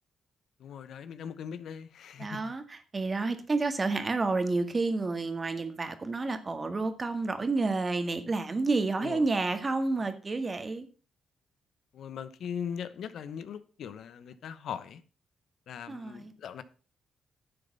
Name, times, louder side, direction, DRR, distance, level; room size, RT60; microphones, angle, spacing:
voice 1, 0.6-2.5 9.0-9.2 11.9-15.0 15.7-16.6, left 8 dB, 70° left, 0.9 m, -40 dB
voice 2, 2.2-10.9 15.9-16.3, right 3 dB, 30° right, 1.8 m, -30 dB
11.0 x 7.0 x 5.4 m
cardioid pair, 85°, 0 cm